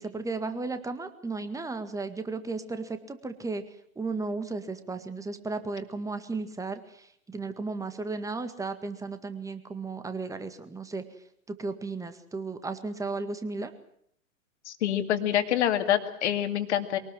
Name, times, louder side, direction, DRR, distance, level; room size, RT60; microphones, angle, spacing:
voice 1, 0.0-3.6 4.0-11.0 11.5-13.7, right 3 dB, 10° right, 10 dB, 1.9 m, -34 dB
voice 2, 14.7-17.0, left 11 dB, 60° left, 8 dB, 2.5 m, -26 dB
23.0 x 19.0 x 7.6 m, 0.67 s
figure-of-eight pair, 105°, 40 cm